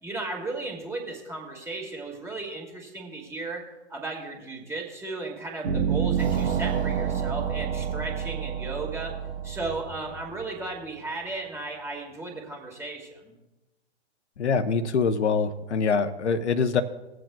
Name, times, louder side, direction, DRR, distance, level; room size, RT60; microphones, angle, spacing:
voice 1, 0.0-3.6 3.9-9.2 9.4-13.3, right 3 dB, 10° right, 0 dB, 2.0 m, -35 dB
sound 1, 5.6-10.9, right 7 dB, 70° right, 1.4 m, -28 dB
voice 2, 14.4-16.8, left 5 dB, 75° left, 9 dB, 0.8 m, -24 dB
20.5 x 7.7 x 2.3 m, 1.1 s
hypercardioid pair, 125°, 34 cm